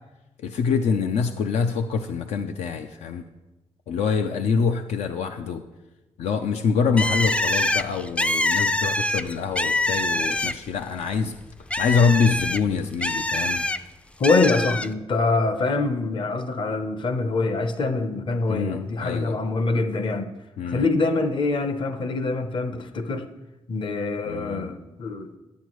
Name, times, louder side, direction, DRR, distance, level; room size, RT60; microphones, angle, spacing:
voice 1, 0.4-3.2 3.9-5.6 6.2-11.3 11.8-13.7 18.5-19.4 20.6-20.9 24.3-24.6, left 5 dB, 80° left, 6 dB, 0.5 m, -25 dB
Bird, 7.0-10.8 11.2-13.8 14.2-14.9, left 1 dB, 10° left, 0.3 m, -24 dB
voice 2, 14.2-20.3 20.7-23.2 23.7-25.4, left 3 dB, 50° left, 9 dB, 0.8 m, -24 dB
11.5 x 8.2 x 3.1 m, 1.0 s
cardioid pair, 85°, 11 cm